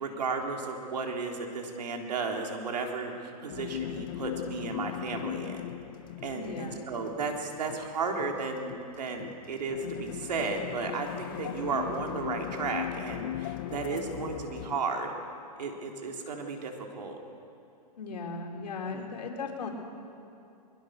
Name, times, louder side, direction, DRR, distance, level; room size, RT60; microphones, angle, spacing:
voice 1, 0.0-5.6 6.2-15.1 15.6-17.2 18.9-19.1, right 4 dB, 85° right, 2 dB, 3.7 m, -34 dB
sound 1, 3.5-14.8, left 12 dB, 35° left, 0.4 m, -39 dB
voice 2, 6.3-6.9 13.9-14.3 18.0-19.7, left 4 dB, 90° left, 1 dB, 3.9 m, -37 dB
22.5 x 22.0 x 6.6 m, 2.6 s
hypercardioid pair, 170°, 21 cm